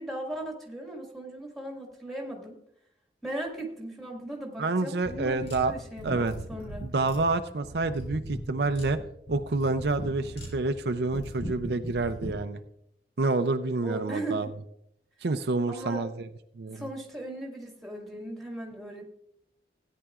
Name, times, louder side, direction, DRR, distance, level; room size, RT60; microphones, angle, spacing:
voice 1, 0.0-2.6 3.2-6.9 13.8-14.5 15.7-16.0 16.7-19.0, right 1 dB, ahead, -1 dB, 1.9 m, -38 dB
voice 2, 4.6-5.7 6.0-6.3 6.8-9.0 9.3-12.6 13.2-14.5 15.2-16.3 16.6-16.9, right 3 dB, 70° right, 8 dB, 0.5 m, -28 dB
sound 1, 5.0-12.4, equal, 80° left, 4.2 m, -39 dB
16.5 x 9.9 x 2.4 m, 0.76 s
head